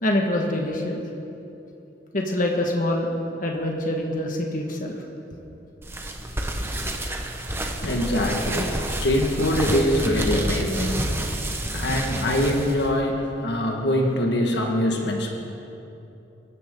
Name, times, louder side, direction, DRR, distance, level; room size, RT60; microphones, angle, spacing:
voice 1, 0.0-1.0 2.1-3.1 3.4-4.9, left 1 dB, 50° left, 0 dB, 1.7 m, -25 dB
sound 1, 5.8-12.9, right 1 dB, 15° right, 1.2 m, -29 dB
voice 2, 7.5-15.4, left 1 dB, 70° left, 1 dB, 1.7 m, -24 dB
24.0 x 14.5 x 3.9 m, 2.8 s
head